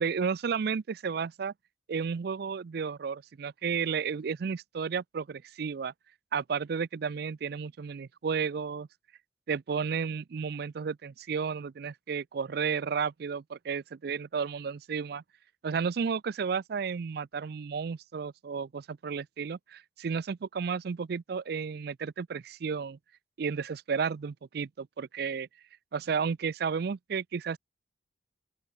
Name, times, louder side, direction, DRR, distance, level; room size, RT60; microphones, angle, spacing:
voice 1, 0.0-1.5 1.9-5.9 6.3-8.9 9.5-15.2 15.6-23.0 23.4-25.5 25.9-27.6, right 6 dB, 60° right, 0.4 m, -32 dB
open air
head